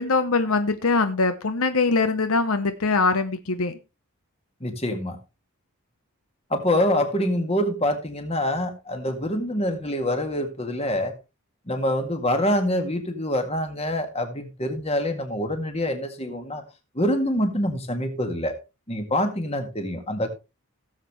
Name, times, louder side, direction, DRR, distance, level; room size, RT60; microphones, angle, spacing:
voice 1, 0.0-3.8, left 3 dB, 75° left, 10 dB, 0.9 m, -22 dB
voice 2, 4.6-5.2 6.5-11.1 11.7-16.6 17.0-18.6 18.9-20.3, left 1 dB, 30° left, 6 dB, 1.9 m, -25 dB
17.5 x 7.4 x 3.1 m, 0.27 s
head